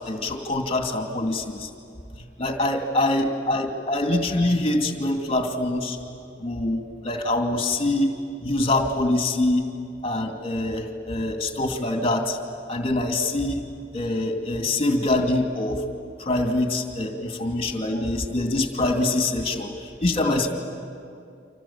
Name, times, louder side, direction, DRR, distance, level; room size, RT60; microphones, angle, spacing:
voice 1, 0.0-1.7 2.2-6.0 6.4-8.1 8.4-9.7 10.0-12.4 12.7-13.6 13.9-15.9 16.2-20.5, left 2 dB, 35° left, 4 dB, 2.5 m, -24 dB
29.5 x 26.0 x 7.3 m, 2.4 s
head